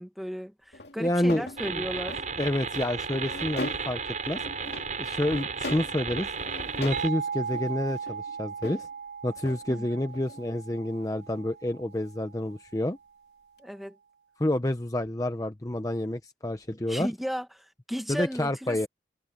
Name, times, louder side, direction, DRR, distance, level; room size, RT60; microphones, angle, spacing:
voice 1, 0.0-2.2 9.7-9.9 13.6-14.0 16.9-18.9, equal, ahead, 1.4 m, -35 dB
Metal chair on hardwood floor, 0.7-2.3 2.7-4.1 4.3-5.0 5.3-6.0 6.3-7.1 7.4-8.9 9.4-9.6 10.0-10.4 11.0-11.1 13.6-13.7, left 2 dB, 75° left, 2.2 m, -40 dB
voice 2, 1.0-1.8 2.4-4.0 4.3-4.4 5.0-6.3 6.8-8.9 9.2-13.0 14.4-17.1 18.1-18.9, left 1 dB, 20° left, 0.8 m, -29 dB
sound 1, 1.6-7.1, right 5 dB, 45° right, 5.9 m, -34 dB
sound 2, 6.9-12.4, right 6 dB, 80° right, 3.8 m, -37 dB
head